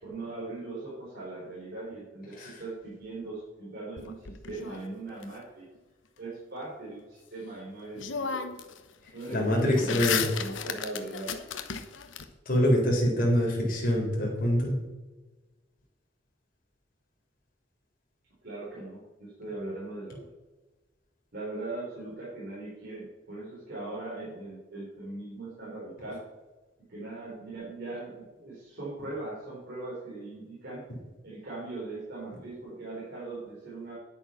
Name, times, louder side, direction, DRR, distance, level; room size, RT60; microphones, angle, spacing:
voice 1, 0.0-5.6 6.2-8.4 9.1-11.3 18.4-20.3 21.3-26.2 26.9-30.8 31.2-33.9, right 2 dB, 55° right, -7 dB, 4.1 m, -40 dB
sound 1, 4.0-5.2 7.5-7.6 8.0-8.8 9.1-12.2, left 7 dB, 85° left, 1.0 m, -34 dB
voice 2, 9.3-10.2 12.5-14.7, equal, 50° left, -2 dB, 4.2 m, -25 dB
10.5 x 8.5 x 5.8 m, 1.2 s
head